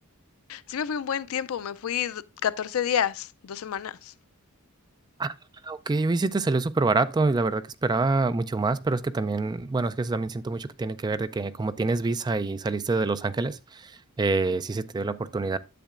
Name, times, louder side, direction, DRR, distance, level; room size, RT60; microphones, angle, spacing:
voice 1, 0.5-4.1, left 8 dB, 70° left, 0.4 m, -29 dB
voice 2, 5.6-15.6, right 3 dB, 20° right, 0.3 m, -26 dB
10.0 x 7.4 x 2.4 m
head